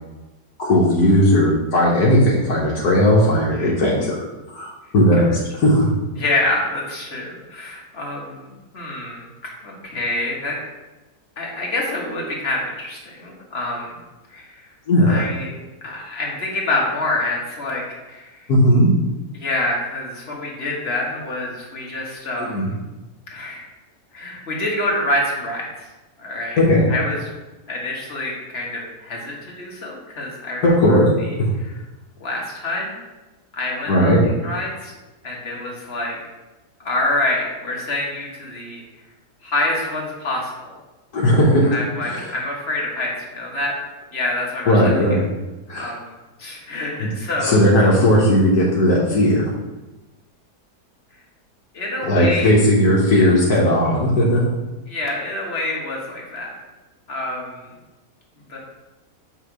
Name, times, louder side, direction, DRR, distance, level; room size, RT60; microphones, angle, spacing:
voice 1, 0.6-5.9 14.9-15.2 18.5-18.9 22.4-22.7 26.6-26.9 30.6-31.1 31.4-31.5 33.9-34.2 41.1-42.3 44.7-45.2 45.7-46.0 47.0-47.1 47.4-49.5 52.0-54.5, equal, 65° left, -3 dB, 1.5 m, -16 dB
voice 2, 6.2-8.5 8.7-10.6 11.4-14.0 14.3-14.6 15.1-15.5 15.8-18.3 19.3-22.7 23.3-23.6 24.1-25.9 26.2-26.6 26.9-27.2 27.7-31.0 32.2-33.0 33.6-34.9 35.2-36.2 36.8-38.8 39.4-40.8 41.7-43.7 44.1-44.9 45.8-46.1 46.4-47.6 51.7-52.5 53.1-53.3 54.9-56.5 57.1-57.7 58.5-58.6, left 2 dB, 40° left, -3 dB, 1.5 m, -26 dB
7.7 x 3.0 x 4.8 m, 1.1 s
omnidirectional pair, 1.8 m